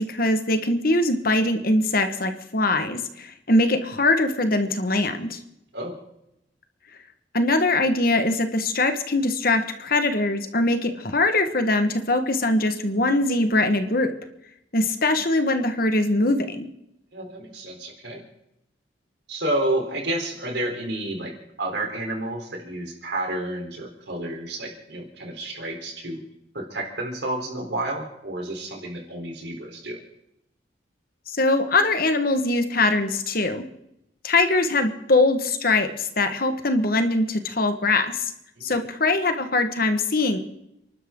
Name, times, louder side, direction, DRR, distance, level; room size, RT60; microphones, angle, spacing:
voice 1, 0.0-5.4 7.3-14.1 14.7-16.7 31.4-33.6 34.2-38.1 38.6-40.4, left 2 dB, 50° left, 7 dB, 1.5 m, -22 dB
voice 2, 17.1-18.2 19.3-21.3 21.6-26.2 26.5-30.0 38.6-38.8, right 1 dB, 60° right, 1 dB, 4.0 m, -30 dB
29.5 x 12.0 x 3.8 m, 0.82 s
head